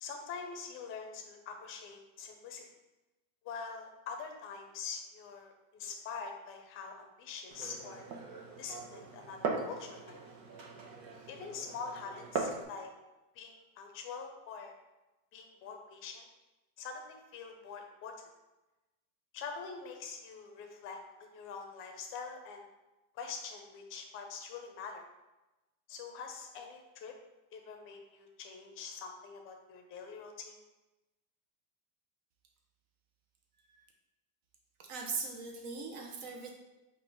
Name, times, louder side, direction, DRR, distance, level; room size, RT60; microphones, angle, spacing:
voice 1, 0.0-2.6 3.4-8.1 8.6-10.2 11.3-12.9 13.3-14.7 15.3-16.3 16.8-18.1 19.3-22.7 23.1-25.1 25.9-27.2 27.5-30.6, left 5 dB, 30° left, 4 dB, 0.5 m, -44 dB
Glass, 7.5-12.6, right 4 dB, 90° right, 1.0 m, -40 dB
voice 2, 34.8-36.5, right 4 dB, 65° right, 1 dB, 1.0 m, -40 dB
4.4 x 2.5 x 4.6 m, 1.0 s
supercardioid pair, 155°, 49 cm